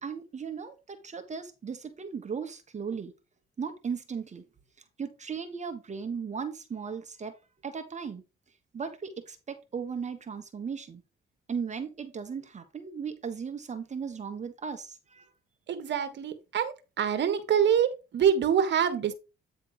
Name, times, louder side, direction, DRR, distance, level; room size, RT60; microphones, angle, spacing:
voice 1, 0.0-3.1 3.6-4.4 5.0-7.4 7.6-8.2 8.7-11.0 11.5-15.3, right 6 dB, 35° right, 1.4 m, -37 dB
voice 2, 15.7-19.1, right 8 dB, 65° right, 1.4 m, -25 dB
9.2 x 3.6 x 4.9 m
cardioid pair, 90°, 20 cm